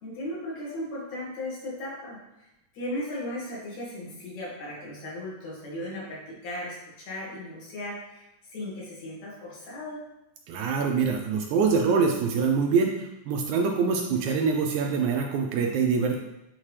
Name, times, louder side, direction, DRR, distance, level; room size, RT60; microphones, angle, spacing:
voice 1, 0.0-2.5 2.7-10.0, left 1 dB, 60° left, -6 dB, 3.1 m, -36 dB
voice 2, 10.5-12.9 13.3-16.2, right 5 dB, 80° right, 2 dB, 1.8 m, -24 dB
8.8 x 3.6 x 3.2 m, 0.93 s
omnidirectional pair, 3.8 m